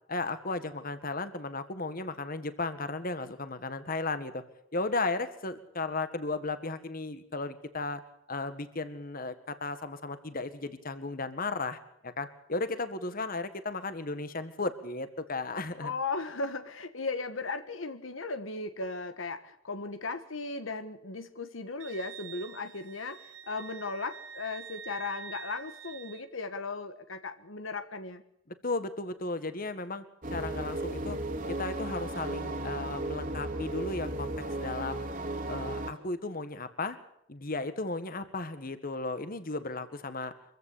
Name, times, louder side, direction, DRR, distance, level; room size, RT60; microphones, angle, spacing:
voice 1, 0.1-4.4 4.7-8.0 8.3-15.9 28.5-30.0 30.3-31.2 31.6-34.3 34.6-35.1 35.5-37.0 37.3-40.3, left 3 dB, 45° left, 11 dB, 1.7 m, -35 dB
voice 2, 15.8-28.2, left 3 dB, 75° left, 10 dB, 1.5 m, -37 dB
Wind instrument woodwind instrument, 21.8-26.3, right 6 dB, 65° right, 1.1 m, -46 dB
sound 1, 30.2-35.9, right 1 dB, 40° right, 2.8 m, -35 dB
25.0 x 15.5 x 8.5 m, 0.75 s
head